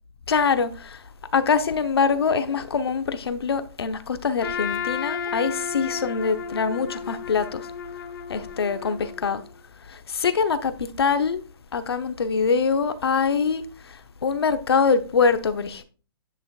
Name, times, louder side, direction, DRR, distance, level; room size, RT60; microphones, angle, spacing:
voice 1, 0.3-1.0 1.3-7.7 8.3-9.4 9.9-11.4 11.7-13.7 14.2-15.8, left 5 dB, 85° left, 0.9 m, -24 dB
Trumpet, 4.4-9.5, left 7 dB, 60° left, 0.9 m, -33 dB
9.9 x 5.6 x 2.4 m
hypercardioid pair, 135°, 13 cm